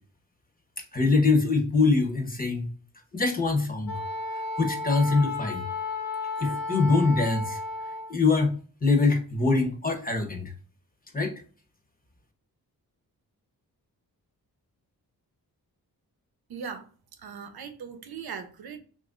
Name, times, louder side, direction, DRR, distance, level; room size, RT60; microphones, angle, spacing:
voice 1, 0.9-2.7 3.1-4.0 4.3-5.6 6.4-7.6 8.1-10.5 11.1-11.3, left 3 dB, 25° left, 0.9 m, -24 dB
Wind instrument woodwind instrument, 3.9-8.1, left 2 dB, 65° left, 0.8 m, -33 dB
voice 2, 16.5-16.9 17.2-18.8, right 6 dB, 80° right, 0.7 m, -39 dB
3.0 x 2.6 x 3.6 m
cardioid pair, 90°, 37 cm